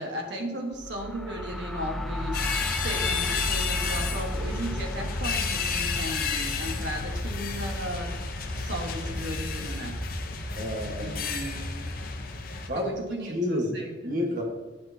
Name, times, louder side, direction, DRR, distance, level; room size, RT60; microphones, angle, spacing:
voice 1, 0.0-8.1 8.5-10.0 11.0-11.9 12.7-14.2, equal, 75° right, 2 dB, 1.3 m, -36 dB
sound 1, 0.7-12.4, equal, ahead, 0.3 m, -37 dB
sound 2, 2.3-12.7, left 4 dB, 50° left, 0.7 m, -31 dB
voice 2, 10.6-11.1 12.7-12.9 13.3-14.4, left 1 dB, 50° right, 0 dB, 1.4 m, -30 dB
9.4 x 6.1 x 2.8 m, 1.3 s
head